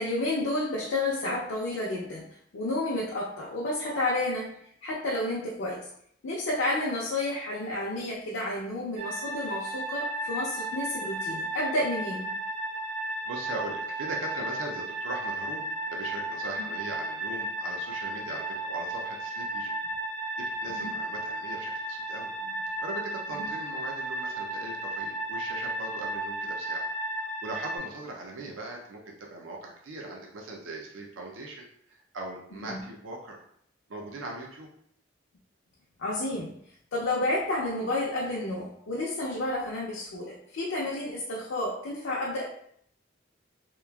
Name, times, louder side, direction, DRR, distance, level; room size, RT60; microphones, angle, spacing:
voice 1, 0.0-2.2 2.5-4.5 4.8-5.9 6.2-12.3 16.6-16.7 20.6-20.9 23.3-23.5 32.5-32.8 36.0-36.5 36.9-42.5, left 1 dB, 85° left, -4 dB, 0.5 m, -31 dB
sound 1, 9.0-27.8, right 1 dB, 35° right, 0.5 m, -34 dB
voice 2, 13.3-19.7 20.4-22.3 22.8-26.9 27.2-33.4 33.9-34.7, right 2 dB, 90° right, 0 dB, 0.5 m, -40 dB
2.9 x 2.4 x 2.2 m, 0.67 s
head